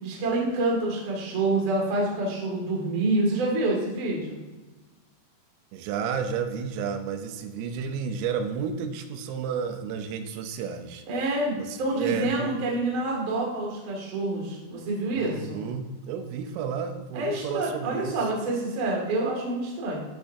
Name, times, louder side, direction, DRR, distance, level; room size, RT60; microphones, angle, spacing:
voice 1, 0.0-4.4 11.1-15.6 17.1-20.0, right 2 dB, 55° right, -3 dB, 1.4 m, -27 dB
voice 2, 5.7-11.0 11.6-12.5 15.1-18.2, right 6 dB, 85° right, 7 dB, 3.2 m, -32 dB
13.0 x 4.5 x 2.7 m, 1.2 s
omnidirectional pair, 5.8 m